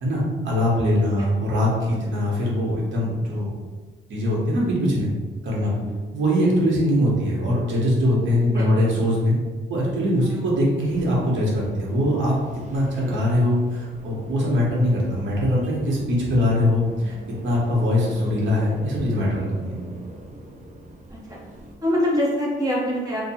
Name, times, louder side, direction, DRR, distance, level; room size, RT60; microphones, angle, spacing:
voice 1, 0.0-3.5 4.1-5.1 5.4-5.7 6.1-9.3 9.7-12.4 12.7-17.1 17.4-19.7, left 1 dB, 70° right, -4 dB, 1.3 m, -22 dB
voice 2, 1.8-2.2 5.6-6.0 8.5-8.9 10.2-10.5 21.1-21.4 21.8-23.2, equal, 20° right, -5 dB, 1.3 m, -26 dB
sound 1, 10.9-21.7, right 1 dB, 40° right, 0.6 m, -41 dB
2.7 x 2.5 x 4.2 m, 1.4 s
cardioid pair, 90°, 20 cm